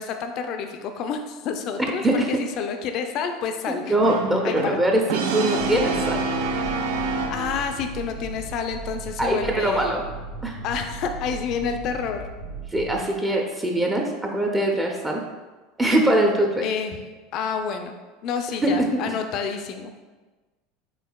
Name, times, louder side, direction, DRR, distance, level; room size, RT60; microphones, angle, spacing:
voice 1, 0.0-4.0 4.4-4.8 7.3-9.9 10.6-12.3 13.3-13.5 16.6-17.1 17.3-17.9 18.2-19.9, left 6 dB, 55° left, 6 dB, 0.4 m, -29 dB
voice 2, 3.9-6.2 9.2-10.0 10.4-10.6 12.7-15.2 15.8-16.6 18.6-19.0, right 1 dB, 15° right, 1 dB, 0.5 m, -22 dB
Brass instrument, 4.0-7.8, right 3 dB, 70° right, 0.4 m, -27 dB
sound 1, 5.6-13.0, right 3 dB, 90° right, 0.9 m, -37 dB
4.6 x 3.3 x 2.3 m, 1.2 s
hypercardioid pair, 80°, 0 cm